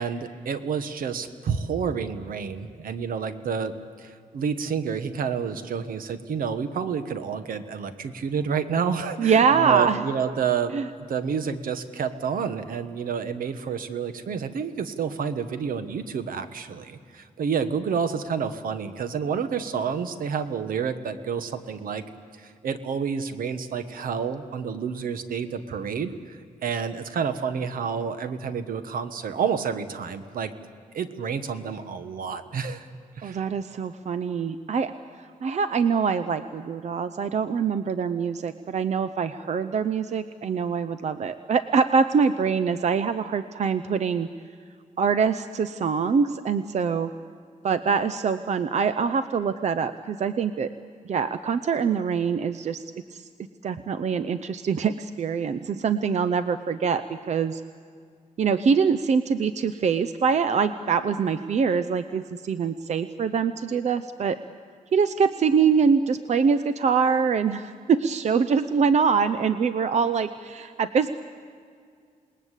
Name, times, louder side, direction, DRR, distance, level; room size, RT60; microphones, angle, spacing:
voice 1, 0.0-10.8 11.1-22.0 22.3-30.5 30.9-32.9 33.2-33.4, right 6 dB, 80° right, 10 dB, 1.4 m, -29 dB
voice 2, 9.2-10.0 10.7-10.9 33.2-34.9 35.2-44.3 45.0-47.1 47.6-50.7 51.0-52.8 53.1-53.3 53.6-57.6 58.4-64.4 64.9-71.2, right 6 dB, 55° right, 12 dB, 0.7 m, -24 dB
28.0 x 20.0 x 8.3 m, 2.1 s
wide cardioid pair, 125°, 14 cm